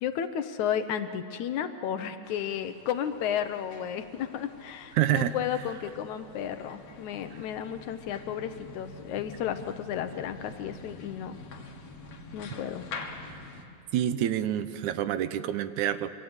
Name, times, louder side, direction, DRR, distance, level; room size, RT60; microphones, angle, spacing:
voice 1, 0.0-11.4 12.3-12.8, left 9 dB, 75° left, 9 dB, 2.4 m, -33 dB
sound 1, 2.2-13.7, left 3 dB, 60° left, 2.9 m, -46 dB
voice 2, 5.0-5.4 13.9-16.1, right 11 dB, 80° right, 12 dB, 2.3 m, -27 dB
27.0 x 25.0 x 8.2 m, 2.7 s
omnidirectional pair, 3.4 m